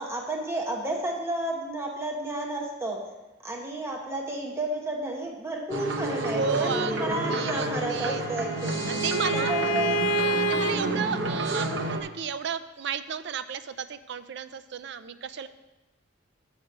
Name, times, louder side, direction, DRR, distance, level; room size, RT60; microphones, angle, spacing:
voice 1, 0.0-3.0 3.4-8.9 9.3-10.1 10.6-11.1, right 1 dB, 15° right, 0 dB, 0.9 m, -31 dB
sound 1, 5.7-12.0, right 1 dB, 80° right, 0.8 m, -30 dB
voice 2, 6.3-8.2 8.9-9.5 10.2-15.5, right 6 dB, 65° right, 12 dB, 0.4 m, -33 dB
Bowed string instrument, 7.6-10.8, right 2 dB, 65° left, 0.5 m, -28 dB
7.3 x 4.9 x 6.6 m, 1.1 s
head